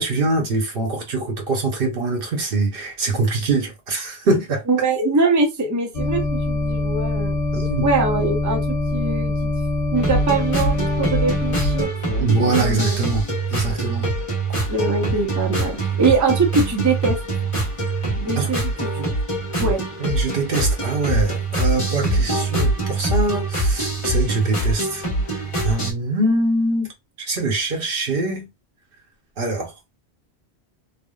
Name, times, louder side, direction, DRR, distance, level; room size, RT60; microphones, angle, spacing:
voice 1, 0.0-4.6 7.5-7.9 12.2-13.2 13.5-14.1 18.3-18.5 19.0-19.1 19.6-19.7 20.0-26.9 27.2-28.5 29.4-29.7, right 2 dB, 60° right, 1.0 m, -23 dB
voice 2, 4.7-7.4 7.8-8.6 8.9-9.5 9.9-12.3 12.6-13.0 14.7-17.2 18.2-18.7 19.6-19.8, right 3 dB, 20° right, 0.6 m, -22 dB
sound 1, 5.9-11.8, left 2 dB, 55° left, 1.0 m, -23 dB
sound 2, 10.0-25.9, right 2 dB, 30° left, 1.1 m, -24 dB
3.3 x 2.1 x 2.3 m
omnidirectional pair, 1.1 m